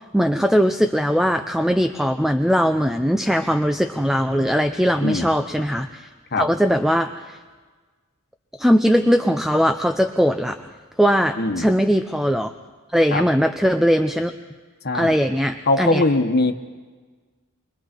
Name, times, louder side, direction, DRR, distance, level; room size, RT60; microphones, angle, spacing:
voice 1, 0.1-6.1 6.4-7.4 8.6-10.7 11.0-12.5 12.9-14.3 14.9-16.0, equal, ahead, 7 dB, 0.5 m, -20 dB
voice 2, 11.4-11.7 13.1-13.2 14.8-15.1 15.7-16.5, left 2 dB, 50° left, 5 dB, 1.4 m, -21 dB
28.5 x 23.0 x 4.5 m, 1.4 s
head